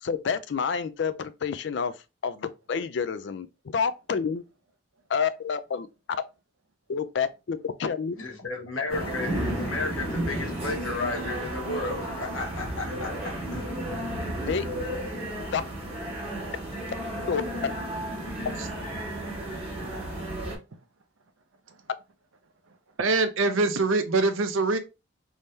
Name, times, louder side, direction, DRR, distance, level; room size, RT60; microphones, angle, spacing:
voice 1, 0.0-1.9 2.2-3.5 3.7-4.4 5.1-5.9 6.9-8.1 14.5-14.7 15.5-15.6 17.3-17.4, left 6 dB, 60° left, 0.4 m, -28 dB
voice 2, 8.1-13.6, left 3 dB, 80° left, 1.3 m, -33 dB
sound 1, 8.9-20.6, right 1 dB, 25° right, 1.5 m, -33 dB
voice 3, 23.0-24.8, right 3 dB, 80° right, 0.6 m, -24 dB
3.5 x 2.7 x 3.2 m
head